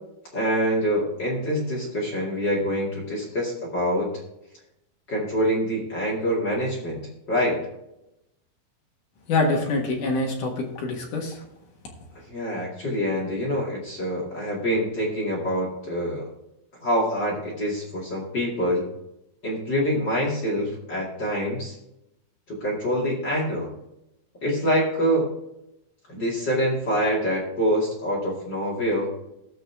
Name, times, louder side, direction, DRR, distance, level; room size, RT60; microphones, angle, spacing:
voice 1, 0.3-4.1 5.1-7.0 7.3-7.6 12.3-16.2 16.8-18.9 19.4-21.7 22.5-23.7 24.4-25.3 26.1-29.1, equal, 40° left, -4 dB, 1.6 m, -25 dB
voice 2, 9.3-11.4, left 2 dB, 65° left, 0 dB, 2.0 m, -25 dB
18.0 x 6.5 x 3.5 m, 0.87 s
omnidirectional pair, 5.8 m